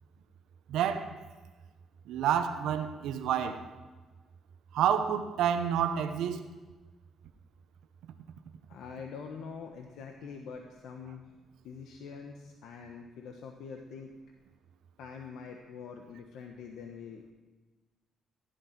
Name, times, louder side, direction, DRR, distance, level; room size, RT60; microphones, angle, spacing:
voice 1, 0.7-1.1 2.1-3.6 4.7-6.4, right 9 dB, 85° right, 7 dB, 1.0 m, -29 dB
voice 2, 8.7-11.3 11.6-14.1 15.0-17.3, left 6 dB, 80° left, 3 dB, 1.2 m, -45 dB
16.0 x 11.0 x 6.0 m, 1.3 s
cardioid pair, 90°, 0 cm